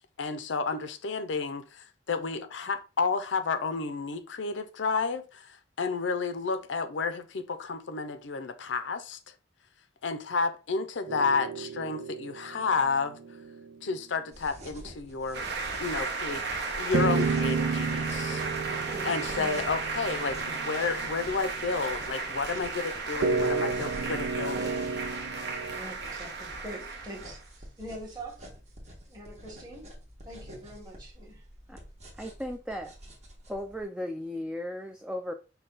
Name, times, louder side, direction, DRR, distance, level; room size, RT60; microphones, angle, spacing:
voice 1, 0.2-9.3 10.0-13.2 13.8-15.5 15.8-16.4 16.8-18.4 19.0-24.8, left 4 dB, 80° left, 0.6 m, -31 dB
sound 1, 11.1-13.7 16.9-21.5 23.2-25.8, right 4 dB, 75° right, 0.4 m, -32 dB
sound 2, 14.3-33.8, equal, 35° right, 1.3 m, -47 dB
sound 3, 15.3-27.4, right 4 dB, 60° right, 1.0 m, -35 dB
voice 2, 18.6-19.6 25.8-28.4 29.1-29.8 30.2-31.4, right 1 dB, 20° right, 1.5 m, -44 dB
voice 3, 32.2-32.9 33.5-35.3, left 1 dB, 5° right, 0.3 m, -36 dB
5.5 x 2.3 x 3.9 m
head